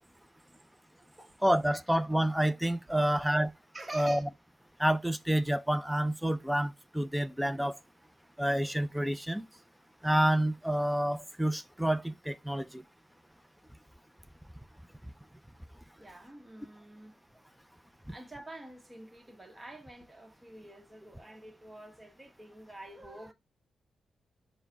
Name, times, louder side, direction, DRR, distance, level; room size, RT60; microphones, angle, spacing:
voice 1, 1.4-3.5 3.9-4.3 4.8-7.8 8.4-9.5 10.0-12.8 18.1-18.2, right 1 dB, 5° right, 0.4 m, -28 dB
voice 2, 3.7-4.2 16.0-17.1 18.1-23.3, right 1 dB, 20° right, 1.0 m, -47 dB
4.6 x 2.1 x 4.5 m
cardioid pair, 95°, 0 cm